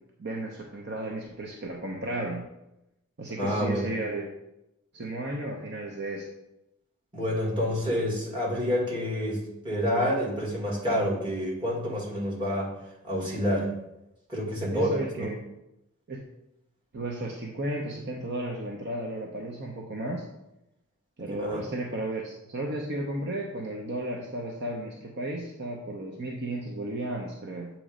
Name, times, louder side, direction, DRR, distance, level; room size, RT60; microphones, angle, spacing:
voice 1, 0.2-2.4 3.2-4.3 4.9-6.3 14.7-15.4 16.1-16.2 16.9-20.2 21.2-27.7, right 1 dB, 50° right, 0 dB, 0.7 m, -34 dB
voice 2, 3.4-3.9 7.1-12.7 13.0-13.7 14.3-15.3 21.2-21.6, equal, 20° right, -5 dB, 1.7 m, -28 dB
7.6 x 3.0 x 5.0 m, 0.89 s
head